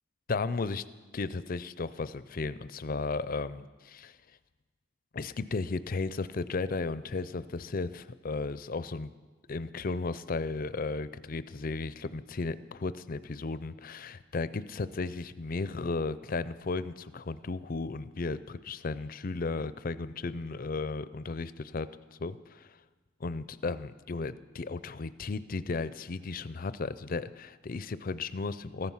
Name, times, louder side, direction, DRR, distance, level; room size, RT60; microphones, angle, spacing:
voice 1, 0.3-0.8 1.1-4.2 5.1-9.1 9.5-21.9 22.2-22.7 23.2-28.9, left 3 dB, 40° left, 15 dB, 0.5 m, -34 dB
15.0 x 14.0 x 5.7 m, 1.3 s
head